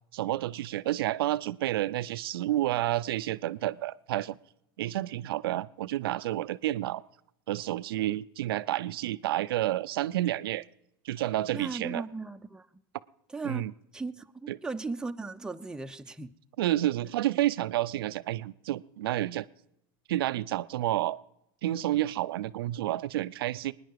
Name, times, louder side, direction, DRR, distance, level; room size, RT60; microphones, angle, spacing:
voice 1, 0.1-4.4 4.8-7.0 7.5-10.6 11.0-12.0 13.4-13.7 14.5-14.6 16.6-19.5 20.1-21.2 21.6-23.7, right 14 dB, 85° right, 0.5 m, -30 dB
voice 2, 11.5-12.7 13.3-16.3, right 3 dB, 5° right, 0.6 m, -37 dB
22.5 x 10.0 x 4.7 m
supercardioid pair, 115°, 12 cm